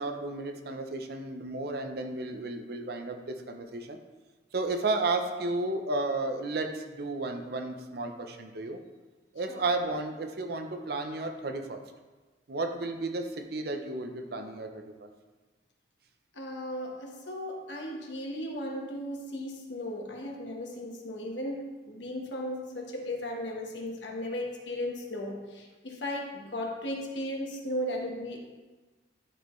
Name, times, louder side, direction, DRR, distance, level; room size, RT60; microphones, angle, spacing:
voice 1, 0.0-4.0 4.5-8.8 9.3-11.8 12.5-15.1, right 2 dB, 55° right, 6 dB, 0.6 m, -33 dB
voice 2, 16.3-28.4, left 1 dB, 80° left, 1 dB, 1.3 m, -36 dB
11.0 x 4.3 x 3.1 m, 1.3 s
head